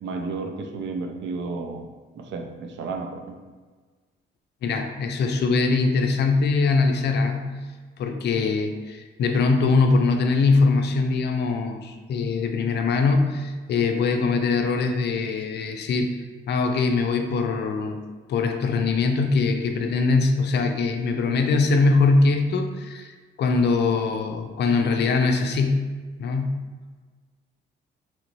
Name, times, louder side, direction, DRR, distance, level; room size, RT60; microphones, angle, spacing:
voice 1, 0.0-1.8 2.2-3.4, right 3 dB, 70° right, 4 dB, 0.5 m, -32 dB
voice 2, 4.6-7.6 8.0-16.1 16.5-18.0 18.3-23.1 23.4-25.9 26.2-26.6, left 4 dB, 60° left, 5 dB, 0.4 m, -22 dB
3.1 x 2.5 x 3.0 m, 1.4 s
cardioid pair, 90°, 20 cm